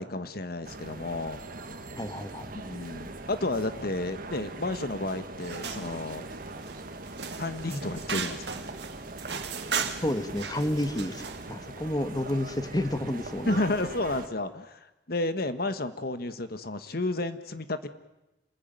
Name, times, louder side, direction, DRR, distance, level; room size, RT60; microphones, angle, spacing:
voice 1, 0.0-1.4 2.5-6.3 7.4-8.6 13.5-17.9, left 2 dB, 55° left, 11 dB, 1.4 m, -31 dB
sound 1, 0.6-14.3, right 2 dB, 50° right, 1.8 m, -41 dB
voice 2, 2.0-2.5 10.0-13.6, left 1 dB, 20° left, 9 dB, 1.4 m, -30 dB
sound 2, 5.4-11.5, right 6 dB, 70° right, 2.3 m, -37 dB
27.5 x 19.5 x 9.2 m, 0.99 s
head